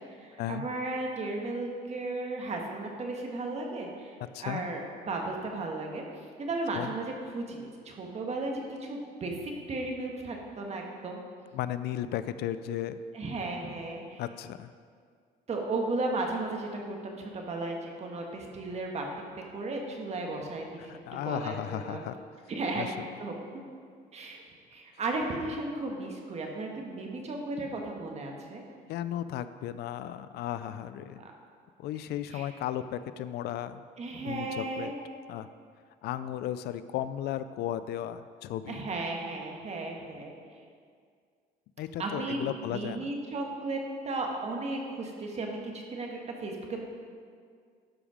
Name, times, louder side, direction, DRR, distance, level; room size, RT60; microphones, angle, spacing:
voice 1, 0.0-4.1 4.4-6.0 6.4-11.2 13.1-14.2 15.5-19.0 19.5-20.9 21.2-22.0 22.5-22.9 23.2-23.6 24.1-24.4 24.7-28.6 31.2-31.3 32.3-32.5 34.0-34.9 38.7-40.4 42.0-43.8 44.0-46.9, right 2 dB, 40° right, 1 dB, 1.6 m, -35 dB
voice 2, 11.5-13.0 14.2-14.7 20.8-22.2 22.7-22.9 28.9-31.2 31.8-33.8 34.2-34.9 35.3-35.5 36.0-38.8 41.8-43.1, left 11 dB, 75° left, 13 dB, 0.4 m, -35 dB
12.0 x 5.1 x 5.1 m, 2.1 s
cardioid pair, 110°, 17 cm